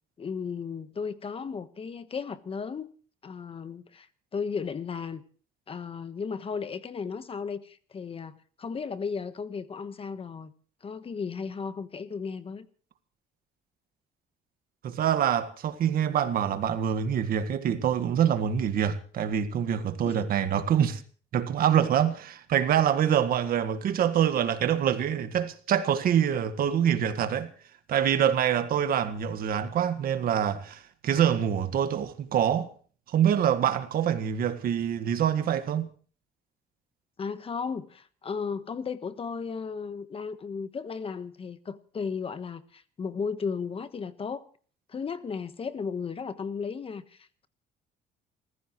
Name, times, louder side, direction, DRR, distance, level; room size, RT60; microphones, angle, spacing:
voice 1, 0.2-2.9 3.2-4.1 4.3-5.2 5.7-10.5 10.8-12.7 20.1-20.2 37.2-44.5 44.9-47.5, left 5 dB, 35° left, 1.2 m, -35 dB
voice 2, 14.8-21.0 21.3-27.5 27.9-32.7 33.1-35.9, right 9 dB, 60° right, 1.7 m, -25 dB
28.5 x 15.0 x 3.1 m
cardioid pair, 110°, 17 cm